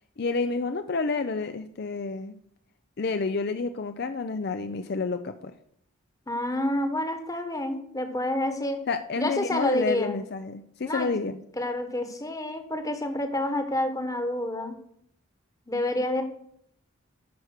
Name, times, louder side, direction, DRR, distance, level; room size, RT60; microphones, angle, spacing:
voice 1, 0.2-2.4 3.0-5.5 8.9-11.4, left 4 dB, 50° left, 9 dB, 0.5 m, -29 dB
voice 2, 6.3-8.8 9.2-10.2 10.8-11.1 11.6-14.8 15.7-16.2, left 1 dB, 15° left, 7 dB, 1.2 m, -28 dB
11.0 x 5.9 x 6.5 m, 0.70 s
head